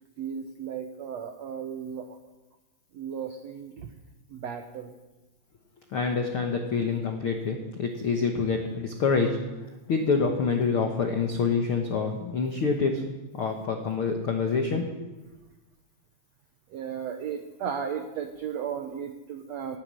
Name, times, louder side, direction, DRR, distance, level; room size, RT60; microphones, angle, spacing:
voice 1, 0.2-2.2 2.9-3.9 4.3-4.9 16.7-19.8, right 7 dB, 85° right, 6 dB, 1.5 m, -35 dB
voice 2, 5.9-9.3 9.9-13.0 13.3-14.8, left 5 dB, 80° left, 3 dB, 1.2 m, -26 dB
18.5 x 9.9 x 7.5 m, 1.1 s
omnidirectional pair, 4.4 m